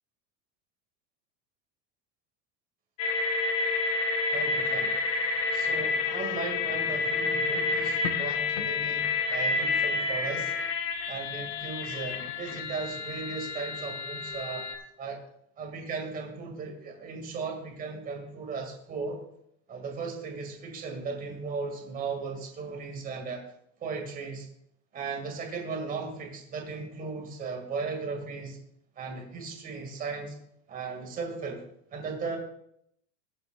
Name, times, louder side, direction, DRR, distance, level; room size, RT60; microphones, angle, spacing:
sound 1, 3.0-14.8, left 4 dB, 90° left, 1.4 m, -29 dB
voice 1, 4.3-5.1 5.5-10.5 11.1-14.7 15.0-15.2 15.6-19.2 19.7-23.4 23.8-24.5 24.9-28.6 29.0-30.3 30.7-31.6 31.9-32.4, right 4 dB, 25° right, 2 dB, 2.2 m, -36 dB
20.5 x 7.8 x 2.4 m, 0.73 s
supercardioid pair, 170°, 37 cm